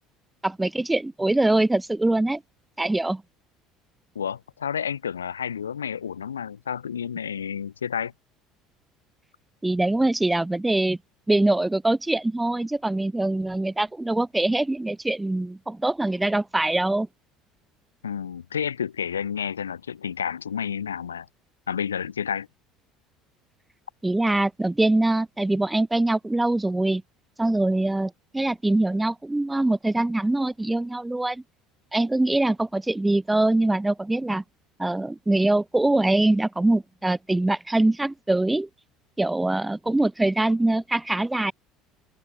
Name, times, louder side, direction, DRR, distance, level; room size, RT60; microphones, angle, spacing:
voice 1, 0.4-2.4 2.8-3.2 9.6-11.0 11.3-17.1 24.0-27.0 27.4-31.4 31.9-34.4 34.8-38.7 39.2-41.5, right 2 dB, 10° right, 4.4 m, -23 dB
voice 2, 4.1-8.1 18.0-21.3 21.7-22.5, left 8 dB, 80° left, 1.2 m, -30 dB
open air
figure-of-eight pair, 60°, 0 cm